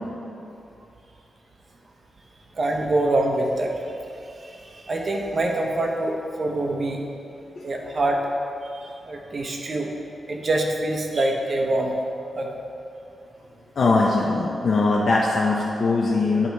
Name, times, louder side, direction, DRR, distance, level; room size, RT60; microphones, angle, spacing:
voice 1, 2.5-3.7 4.4-7.0 7.6-8.2 8.6-9.9 10.3-11.9 12.3-12.5, right 2 dB, 45° right, 1 dB, 1.0 m, -25 dB
voice 2, 13.8-16.5, left 3 dB, 60° left, -3 dB, 0.7 m, -21 dB
10.0 x 4.1 x 4.6 m, 2.7 s
cardioid pair, 90°, 0 cm